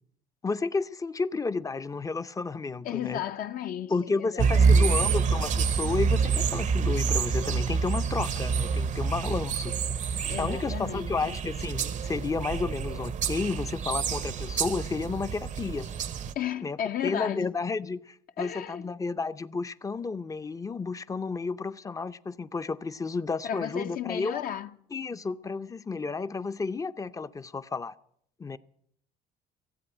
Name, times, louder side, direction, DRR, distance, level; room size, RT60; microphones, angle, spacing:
voice 1, 0.4-3.2 3.9-9.7 10.4-15.9 16.6-16.8 17.0-24.4 24.9-27.9 28.4-28.6, left 4 dB, 20° left, 0.5 m, -32 dB
voice 2, 2.8-5.2 10.2-11.4 16.3-17.5 18.4-18.9 23.4-24.7, left 10 dB, 55° left, 0.7 m, -34 dB
sound 1, 4.4-16.3, right 5 dB, 45° right, 0.6 m, -27 dB
16.0 x 8.0 x 8.9 m
cardioid pair, 110°, 17 cm